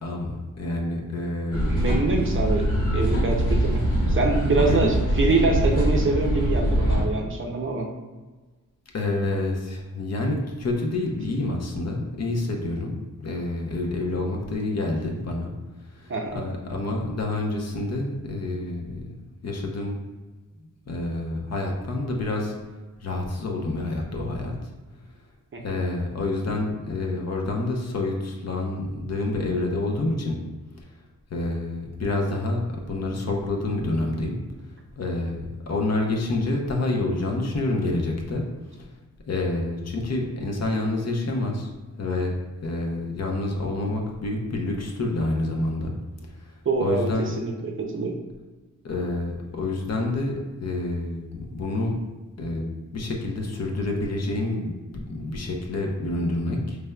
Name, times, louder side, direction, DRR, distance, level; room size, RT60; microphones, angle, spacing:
voice 1, 0.0-1.9 4.7-4.9 8.9-15.5 16.0-19.0 19.4-20.0 20.9-22.5 23.0-24.5 25.6-30.4 31.3-34.4 35.0-38.4 39.3-41.7 42.0-42.3 42.6-45.9 46.8-47.3 48.8-50.3 50.6-51.9 52.4-56.8, left 2 dB, 50° left, 0 dB, 0.7 m, -28 dB
sound 1, 1.5-7.0, equal, 65° left, 1.3 m, -23 dB
voice 2, 1.6-3.8 4.1-7.9 16.1-16.4 25.5-25.6 46.7-48.2, right 3 dB, 40° right, 0 dB, 0.5 m, -25 dB
5.0 x 3.3 x 2.2 m, 1.3 s
wide cardioid pair, 160°, 33 cm